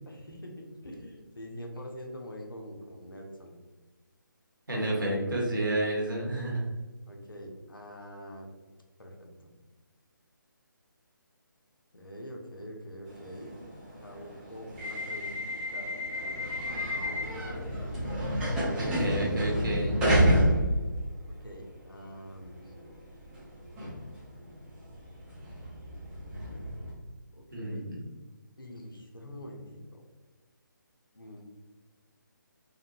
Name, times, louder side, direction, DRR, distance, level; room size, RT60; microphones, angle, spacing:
voice 1, 0.1-3.6 4.9-5.4 7.1-8.5 9.0-9.5 11.9-16.0 16.4-18.3 21.3-22.7 27.3-27.9 28.6-30.0 31.1-31.4, equal, 85° left, 1 dB, 0.7 m, -45 dB
voice 2, 4.7-6.7 18.8-20.1 27.5-28.0, right 1 dB, 70° right, -2 dB, 1.0 m, -30 dB
sound 1, 13.1-21.5 21.9-26.9, equal, 5° right, 0.6 m, -30 dB
3.6 x 2.1 x 2.6 m, 1.3 s
figure-of-eight pair, 145°, 11 cm